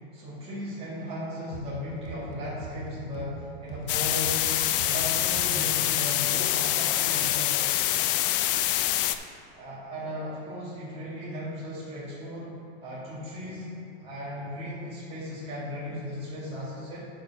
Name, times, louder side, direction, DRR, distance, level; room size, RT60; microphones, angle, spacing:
voice 1, 0.1-4.5 4.8-7.8 9.5-13.7 14.0-17.1, left 1 dB, 20° right, -8 dB, 1.9 m, -36 dB
sound 1, 1.5-6.0, right 3 dB, 60° right, 1.1 m, -41 dB
sound 2, 3.9-9.1, left 13 dB, 60° left, 0.6 m, -25 dB
10.0 x 4.5 x 5.6 m, 2.5 s
supercardioid pair, 145°, 30 cm